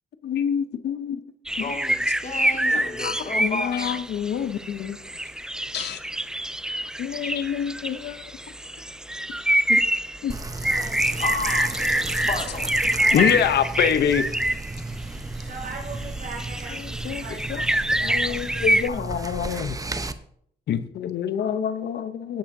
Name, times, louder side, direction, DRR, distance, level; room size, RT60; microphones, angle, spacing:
voice 1, 0.2-1.2 2.7-5.0 5.7-6.0 7.0-8.2 9.7-9.8 10.2-10.3 13.1-14.3 17.0-17.2 17.5-17.6 18.0-19.8 20.7-22.4, left 8 dB, 80° left, 0.8 m, -26 dB
sound 1, 1.5-15.0 15.3-18.9, right 1 dB, 5° right, 0.4 m, -26 dB
voice 2, 1.6-4.0 11.2-11.7 12.3-12.6 13.2-13.4, left 3 dB, 45° left, 2.3 m, -32 dB
voice 3, 2.6-3.3 10.6-10.9 11.8-13.5 15.3-18.4 18.8-19.0 19.4-19.6, right 3 dB, 60° right, 3.8 m, -40 dB
sound 2, 10.3-20.1, right 2 dB, 20° right, 0.8 m, -33 dB
16.5 x 8.5 x 2.7 m
cardioid pair, 65°, 17 cm